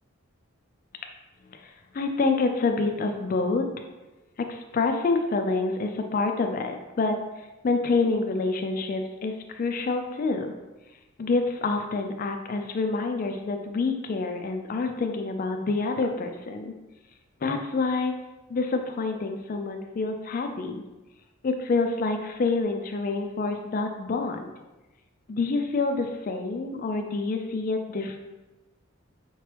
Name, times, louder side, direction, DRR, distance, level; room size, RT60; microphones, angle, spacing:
voice 1, 1.5-3.7 4.4-7.2 7.6-10.5 11.2-16.7 17.4-18.1 18.5-20.8 21.4-24.5 25.3-28.2, left 3 dB, 40° left, 5 dB, 0.3 m, -27 dB
4.3 x 2.9 x 3.3 m, 1.1 s
head